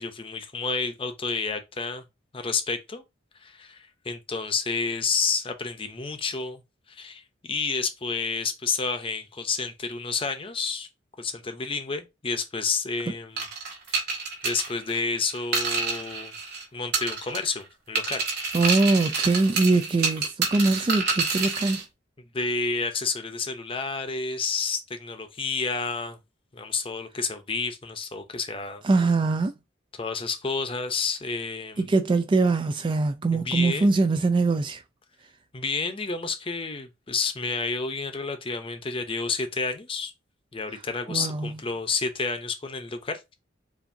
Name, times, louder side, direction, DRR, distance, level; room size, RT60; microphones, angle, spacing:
voice 1, 0.0-2.0 2.3-3.0 3.4-6.6 6.9-10.9 11.2-13.4 13.9-14.1 14.4-18.2 22.3-26.2 26.5-28.8 29.9-31.8 33.3-33.9 35.5-40.1 40.5-43.3, left 4 dB, 30° left, 0.7 m, -30 dB
sound 1, 13.4-16.6 16.9-17.6 18.0-21.8, right 4 dB, 60° right, 2.1 m, -28 dB
voice 2, 18.5-21.8 28.8-29.5 31.8-34.8 41.1-41.5, right 3 dB, 25° right, 0.3 m, -23 dB
6.9 x 2.6 x 2.7 m
head